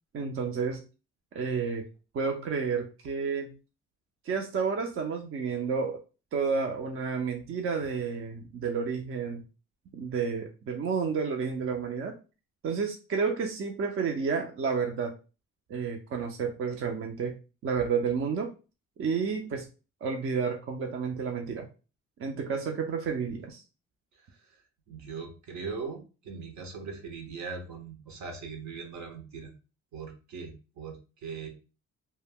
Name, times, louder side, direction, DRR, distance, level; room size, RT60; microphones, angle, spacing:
voice 1, 0.1-0.8 1.3-1.9 2.1-3.5 4.2-6.0 6.3-9.4 9.9-12.1 12.6-15.1 15.7-17.3 17.6-18.5 19.0-19.6 20.0-21.7 22.2-23.6, right 5 dB, 45° right, 3 dB, 0.5 m, -30 dB
voice 2, 24.9-29.5 29.9-31.5, right 5 dB, 70° right, 4 dB, 0.9 m, -40 dB
2.2 x 2.1 x 3.4 m, 0.32 s
cardioid pair, 90°, 30 cm